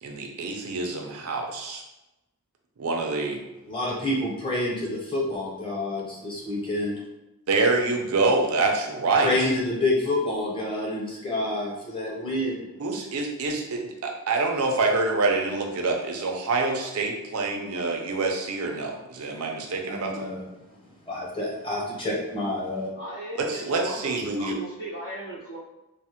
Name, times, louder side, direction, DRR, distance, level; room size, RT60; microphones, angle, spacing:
voice 1, 0.0-1.8 2.8-3.4 7.5-9.3 12.8-20.3 23.5-24.6, right 3 dB, 80° right, 2 dB, 0.5 m, -26 dB
voice 2, 3.7-6.9 9.2-12.7 19.9-20.4 21.1-22.9, left 1 dB, 25° left, -4 dB, 0.6 m, -28 dB
voice 3, 22.9-25.6, right 1 dB, 50° left, -12 dB, 1.1 m, -37 dB
3.2 x 2.0 x 2.8 m, 0.98 s
head